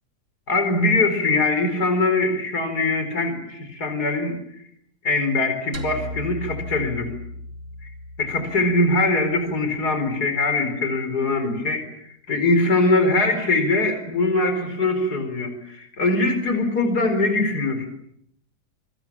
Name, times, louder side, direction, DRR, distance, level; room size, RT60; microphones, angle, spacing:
voice 1, 0.5-4.4 5.0-7.1 7.8-7.9 8.2-11.9 12.3-17.9, left 2 dB, 70° left, 8 dB, 5.0 m, -22 dB
sound 1, 5.7-10.1, left 1 dB, 70° right, 3.2 m, -37 dB
28.0 x 24.5 x 7.4 m, 0.71 s
omnidirectional pair, 1.7 m